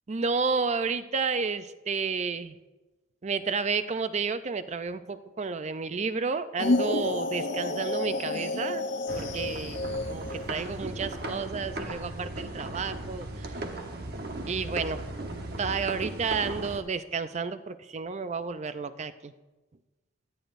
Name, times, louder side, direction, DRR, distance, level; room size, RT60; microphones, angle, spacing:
voice 1, 0.1-2.5 3.2-8.9 9.1-9.8 10.1-13.6 14.4-15.2 15.6-19.3, right 5 dB, 35° right, 12 dB, 0.4 m, -31 dB
sound 1, 6.6-10.5, left 2 dB, 60° left, 0.7 m, -30 dB
sound 2, 9.1-16.8, right 1 dB, 55° right, 1.1 m, -37 dB
17.0 x 11.0 x 2.6 m, 1.2 s
head